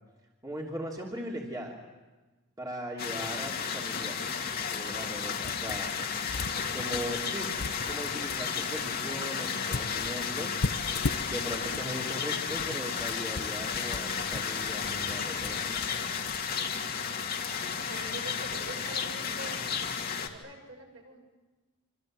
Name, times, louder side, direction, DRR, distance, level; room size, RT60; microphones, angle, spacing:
voice 1, 0.4-1.8 2.6-4.2 4.6-5.9 6.7-7.5 7.9-10.6 11.2-16.0, equal, 15° right, -2 dB, 3.2 m, -39 dB
sound 1, 3.0-20.3, left 6 dB, 45° left, 2.3 m, -33 dB
sound 2, 5.4-6.0 6.3-8.4 9.7-11.9 12.4-16.6, left 3 dB, 85° left, 1.1 m, -37 dB
voice 2, 17.9-19.7 20.3-21.2, right 1 dB, 60° right, 1 dB, 7.4 m, -44 dB
27.5 x 26.0 x 7.8 m, 1.2 s
head